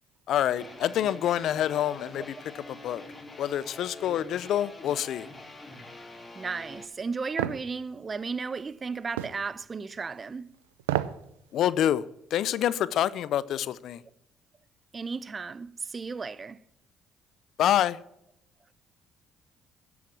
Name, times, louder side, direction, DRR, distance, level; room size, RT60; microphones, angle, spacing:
voice 1, 0.3-3.0 3.4-5.3 11.5-12.0 12.3-14.0 17.6-18.0, left 11 dB, 65° left, 0.5 m, -27 dB
sound 1, 0.5-6.9, left 2 dB, 20° left, 3.5 m, -45 dB
voice 2, 6.3-10.5 14.9-16.6, right 4 dB, 35° right, 0.6 m, -34 dB
sound 2, 7.4-7.6 9.2-9.4 10.8-11.2 11.6-11.7, right 13 dB, 85° right, 0.5 m, -29 dB
10.5 x 7.2 x 8.5 m
hypercardioid pair, 55°, 0 cm